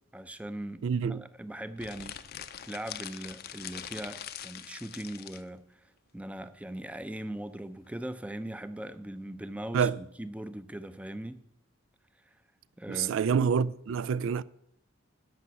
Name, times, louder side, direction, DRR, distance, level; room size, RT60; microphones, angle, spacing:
voice 1, 0.1-0.8 1.1-2.1 2.6-5.6 6.1-11.4 12.8-13.2, right 1 dB, 5° right, 0.5 m, -40 dB
voice 2, 0.8-1.2 9.7-10.0 12.9-14.4, right 6 dB, 65° right, 0.3 m, -27 dB
sound 1, 1.8-5.4, left 10 dB, 50° left, 0.6 m, -43 dB
12.0 x 5.6 x 7.0 m
head